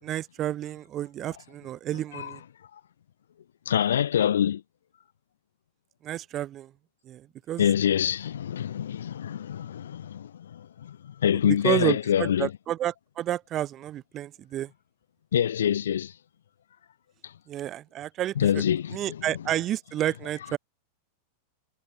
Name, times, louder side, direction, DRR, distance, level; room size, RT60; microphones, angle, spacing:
voice 1, 0.0-2.4 6.0-6.7 7.1-7.7 11.6-14.7 17.5-18.6 18.9-20.6, right 12 dB, 30° right, 3.8 m, -30 dB
voice 2, 3.7-4.6 7.6-12.5 15.3-16.1 18.4-19.2, left 9 dB, 65° left, 1.2 m, -25 dB
figure-of-eight pair, 90°, 0 cm